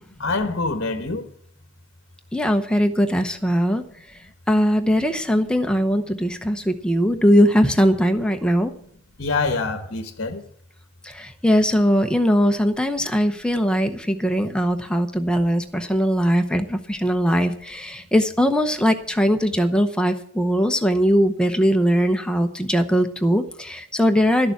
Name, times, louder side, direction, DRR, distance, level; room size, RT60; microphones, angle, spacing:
voice 1, 0.2-1.3 9.2-10.4, left 3 dB, 55° left, 1.2 m, -25 dB
voice 2, 2.3-3.8 4.5-8.7 11.1-24.5, equal, 5° left, 0.8 m, -20 dB
12.5 x 6.8 x 9.4 m
head